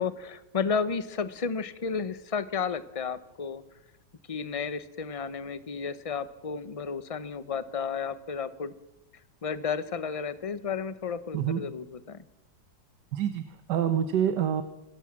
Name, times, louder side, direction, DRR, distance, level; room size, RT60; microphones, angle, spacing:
voice 1, 0.0-3.6 4.3-8.7 9.4-12.2, left 6 dB, 35° left, 14 dB, 0.5 m, -32 dB
voice 2, 13.1-14.6, right 9 dB, 70° right, 10 dB, 1.6 m, -27 dB
26.0 x 14.5 x 7.5 m, 0.96 s
omnidirectional pair, 1.9 m